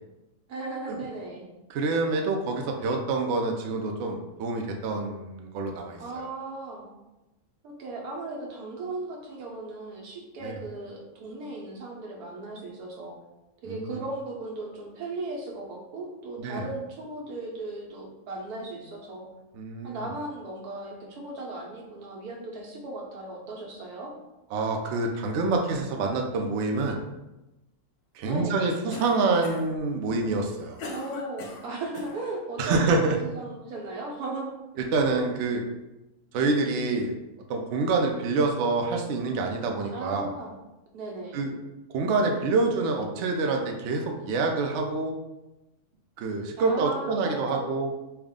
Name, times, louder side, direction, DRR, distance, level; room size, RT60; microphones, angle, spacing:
voice 1, 0.5-1.5 6.0-6.9 7.6-13.2 13.6-19.3 19.8-24.1 28.2-28.7 30.9-34.5 39.9-40.6 40.9-41.4 46.6-47.7, right 2 dB, 85° right, -1 dB, 1.3 m, -36 dB
voice 2, 1.7-6.3 10.4-10.6 13.6-14.0 16.4-16.7 19.5-20.1 24.5-27.0 28.1-30.8 32.6-33.2 34.8-35.6 36.3-37.1 37.5-40.3 41.3-41.5 41.9-45.1 46.2-47.9, right 3 dB, 65° right, 2 dB, 0.7 m, -27 dB
Cough, 28.9-29.8 30.4-32.2, left 2 dB, 85° left, 1.1 m, -39 dB
3.5 x 2.4 x 3.5 m, 0.99 s
omnidirectional pair, 1.6 m